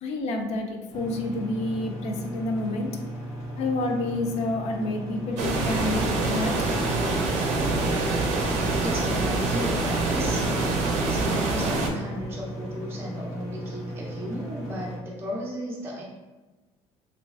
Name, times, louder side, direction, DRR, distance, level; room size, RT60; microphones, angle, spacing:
voice 1, 0.0-3.0 3.6-6.5 11.0-11.1, left 2 dB, 60° left, 3 dB, 0.4 m, -29 dB
sound 1, 0.9-15.0, equal, 80° left, 0.9 m, -37 dB
sound 2, 5.4-11.9, right 3 dB, 75° right, 0.5 m, -25 dB
voice 2, 8.8-10.4 11.0-16.0, equal, 20° right, -4 dB, 0.5 m, -35 dB
3.0 x 2.4 x 2.4 m, 1.2 s
cardioid pair, 140°, 12 cm